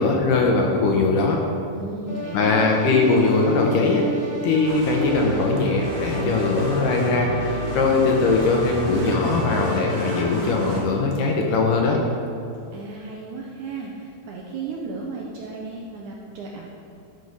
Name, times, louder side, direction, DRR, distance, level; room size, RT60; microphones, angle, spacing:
voice 1, 0.0-1.4 2.3-4.0 4.4-12.0, left 3 dB, 75° left, 0 dB, 2.1 m, -20 dB
voice 2, 1.7-3.0 12.7-16.7, right 3 dB, 75° right, -2 dB, 1.8 m, -35 dB
sound 1, 2.1-10.3, right 2 dB, 45° right, 2.8 m, -32 dB
sound 2, 4.7-10.8, right 1 dB, 60° right, 3.9 m, -31 dB
13.0 x 4.6 x 5.4 m, 2.6 s
omnidirectional pair, 4.3 m